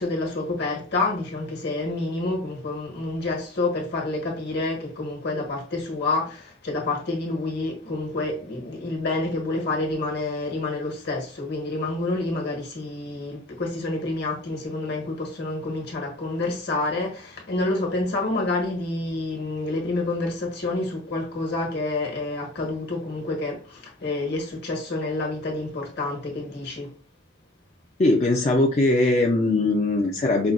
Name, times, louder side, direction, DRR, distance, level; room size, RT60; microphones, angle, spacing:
voice 1, 0.0-26.9, left 2 dB, 55° left, 1.4 m, -28 dB
voice 2, 28.0-30.5, left 2 dB, 35° left, 0.5 m, -20 dB
5.5 x 2.2 x 2.5 m
head